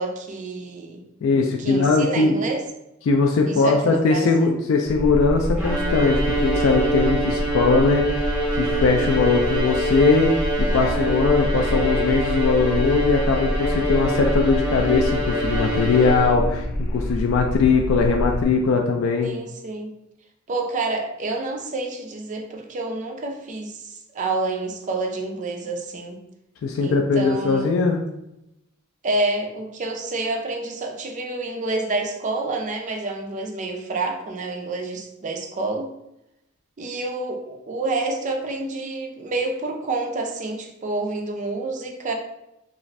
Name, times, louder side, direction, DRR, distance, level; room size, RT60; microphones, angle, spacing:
voice 1, 0.0-1.0 1.6-2.6 3.5-4.5 19.2-19.9 20.5-26.2 26.8-27.7 29.0-35.9 36.8-42.1, right 2 dB, 35° right, 3 dB, 0.4 m, -28 dB
voice 2, 1.2-2.4 3.0-19.3 26.6-28.0, left 4 dB, 65° left, 2 dB, 0.3 m, -20 dB
sound 1, 4.9-18.4, equal, 85° left, 0.7 m, -27 dB
Bowed string instrument, 5.6-16.6, right 1 dB, 5° right, 1.0 m, -25 dB
2.5 x 2.4 x 3.1 m, 0.87 s
head